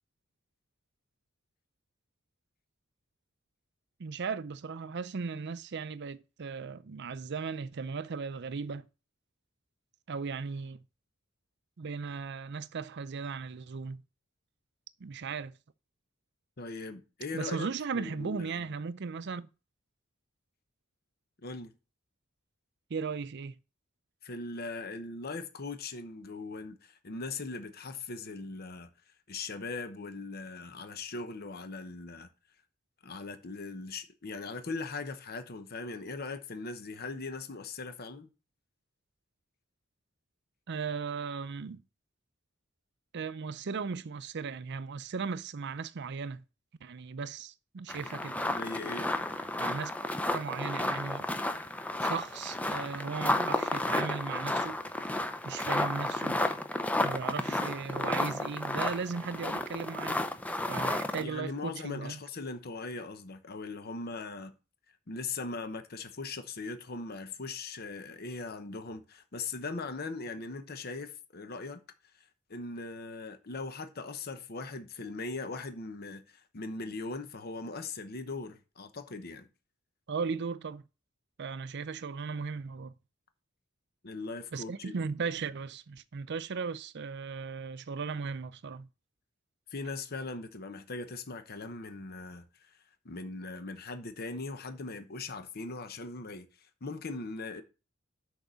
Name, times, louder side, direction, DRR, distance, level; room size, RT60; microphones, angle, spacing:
voice 1, 4.0-8.9 10.1-10.8 11.8-14.0 15.0-15.6 17.3-19.5 22.9-23.6 40.7-41.8 43.1-46.4 46.8-48.4 49.6-49.9 50.2-51.3 52.0-54.8 55.4-56.4 57.0-60.2 60.7-62.2 80.1-80.8 81.4-82.9 84.5-88.9, right 5 dB, 55° right, 0.5 m, -37 dB
voice 2, 16.6-17.7 17.9-18.7 21.4-21.7 24.2-28.9 29.3-32.3 33.0-38.3 48.1-49.1 61.2-64.5 65.1-71.8 72.5-79.5 84.0-85.0 89.7-92.8 93.0-97.6, left 3 dB, 50° left, 0.9 m, -40 dB
sound 1, 47.9-61.2, left 1 dB, 5° left, 0.5 m, -32 dB
6.4 x 4.7 x 6.8 m
head